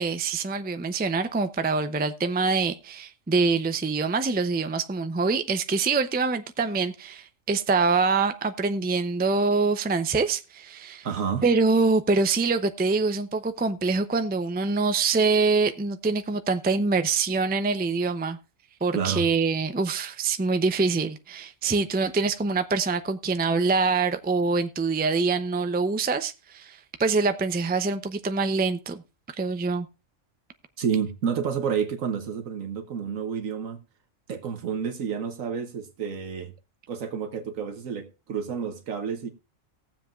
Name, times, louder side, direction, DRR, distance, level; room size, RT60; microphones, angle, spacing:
voice 1, 0.0-11.1 11.4-18.4 18.8-29.0 29.4-29.9, right 4 dB, 15° right, 0.4 m, -25 dB
voice 2, 11.0-11.4 18.9-19.3 30.8-33.8 34.3-36.5 36.9-39.3, right 7 dB, 80° right, 1.4 m, -29 dB
19.0 x 7.5 x 2.4 m
omnidirectional pair, 1.4 m